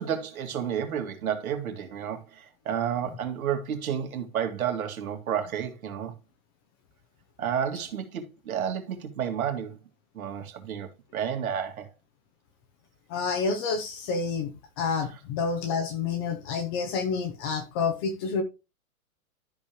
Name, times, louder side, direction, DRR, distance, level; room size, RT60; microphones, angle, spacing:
voice 1, 0.0-6.1 7.4-9.8 10.1-11.9, right 8 dB, 70° right, 2.3 m, -31 dB
voice 2, 13.1-18.4, left 5 dB, 15° left, 0.5 m, -29 dB
12.5 x 5.3 x 2.9 m
hypercardioid pair, 160°, 43 cm